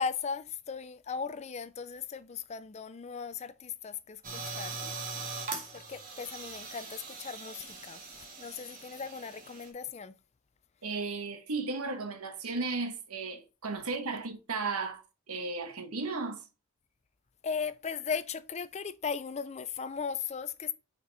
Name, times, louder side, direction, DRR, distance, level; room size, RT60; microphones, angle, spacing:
voice 1, 0.0-4.8 5.7-10.2 17.4-20.7, left 6 dB, 30° left, 0.4 m, -37 dB
sound 1, 4.2-9.7, right 4 dB, 40° right, 1.7 m, -41 dB
voice 2, 10.8-16.4, right 3 dB, 80° right, 1.3 m, -35 dB
6.0 x 4.4 x 4.0 m
head